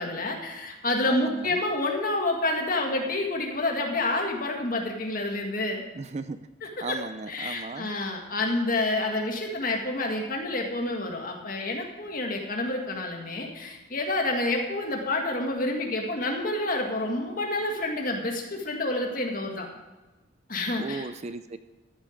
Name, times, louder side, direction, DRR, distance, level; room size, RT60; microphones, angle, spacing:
voice 1, 0.0-5.8 6.6-7.0 7.3-19.7 20.5-21.1, left 2 dB, 45° left, 2 dB, 1.9 m, -28 dB
voice 2, 1.0-1.6 5.9-6.4 6.8-7.9 20.8-21.6, right 3 dB, 35° right, 12 dB, 0.4 m, -36 dB
13.5 x 8.9 x 5.2 m, 1.2 s
head